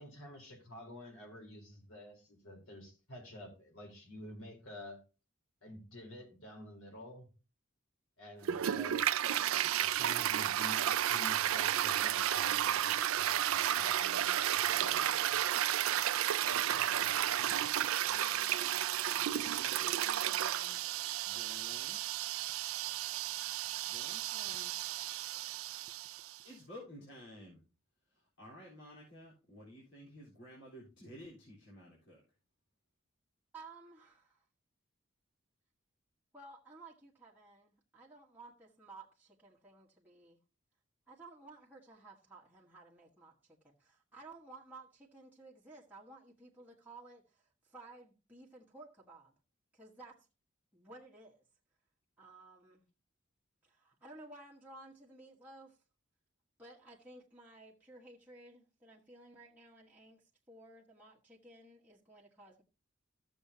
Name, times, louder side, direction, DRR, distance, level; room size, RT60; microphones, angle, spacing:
voice 1, 0.0-5.0 5.6-7.3 8.2-9.4 9.8-15.7, left 1 dB, 80° left, 4.0 m, -50 dB
Toilet flush, 8.4-26.4, right 11 dB, 85° right, 0.4 m, -32 dB
voice 2, 18.0-20.8 21.2-22.3 23.8-24.9 26.4-27.6 28.1-32.2, left 1 dB, 60° left, 4.0 m, -54 dB
voice 3, 33.5-34.4 36.3-40.4 41.1-49.3 49.7-50.3 50.7-51.4 52.2-52.8 53.6-55.8 56.6-62.6, right 2 dB, 10° right, 1.4 m, -55 dB
14.5 x 7.1 x 2.8 m
head